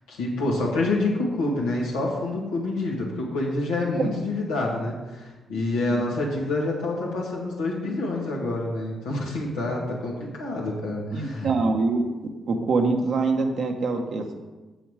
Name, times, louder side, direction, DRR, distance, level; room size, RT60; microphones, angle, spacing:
voice 1, 0.1-11.5, left 2 dB, 90° left, -4 dB, 2.1 m, -27 dB
voice 2, 11.1-12.0 12.5-14.4, right 3 dB, 65° right, 3 dB, 1.2 m, -24 dB
7.9 x 7.1 x 4.9 m, 1.2 s
hypercardioid pair, 45°, 0 cm